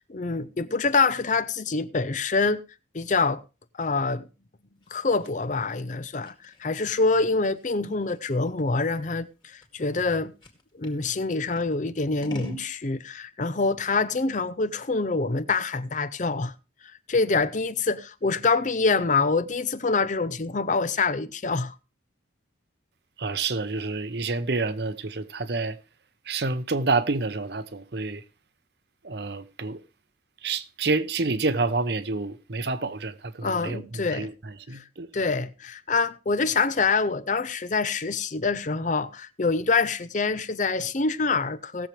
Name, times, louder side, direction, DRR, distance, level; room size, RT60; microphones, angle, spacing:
voice 1, 0.1-2.6 2.9-3.4 3.8-4.3 4.9-10.3 10.7-16.5 17.1-21.7 33.4-34.3 34.7-34.8 35.1-41.9, left 4 dB, 40° left, 0.6 m, -25 dB
Scissors, 4.8-11.0 11.5-12.7, equal, 25° left, 2.2 m, -45 dB
voice 2, 23.2-25.8 26.3-28.2 29.0-29.8 30.4-35.1, right 3 dB, 55° right, 0.8 m, -28 dB
18.5 x 7.4 x 3.2 m
head